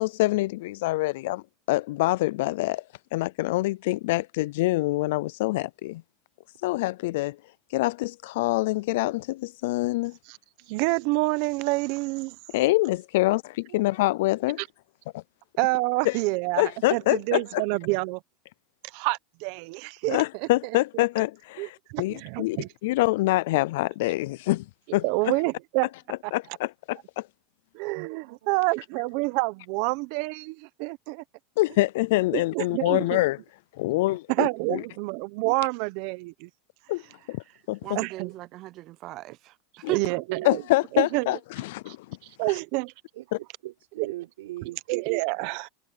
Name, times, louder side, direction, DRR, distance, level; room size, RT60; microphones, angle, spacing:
voice 1, 0.0-2.8 3.1-6.0 6.6-7.4 7.7-10.2 12.5-14.6 15.1-15.2 16.1-16.2 16.6-17.6 20.1-22.6 22.8-24.7 24.9-25.0 26.3-27.3 31.6-33.4 33.8-34.8 36.9-37.0 37.3-38.0 40.4-42.1 42.5-42.6, left 19 dB, 70° left, 0.3 m, -25 dB
voice 2, 10.7-12.4 14.6-14.7 15.6-18.2 18.9-21.1 21.6-22.7 25.0-25.9 26.2-26.6 27.7-31.2 31.7-31.8 32.3-33.3 34.3-36.5 37.0-37.1 37.9-38.3 39.9-40.6 40.9-41.9 42.4-42.9 44.0-44.1 44.6-45.7, right 24 dB, 55° right, 0.8 m, -28 dB
voice 3, 28.2-28.7 33.9-34.2 40.3-40.7 43.1-44.9 45.3-45.5, right 16 dB, 85° right, 4.0 m, -41 dB
voice 4, 37.8-39.5 39.9-40.2, right 15 dB, 40° right, 0.4 m, -36 dB
supercardioid pair, 150°, 0 cm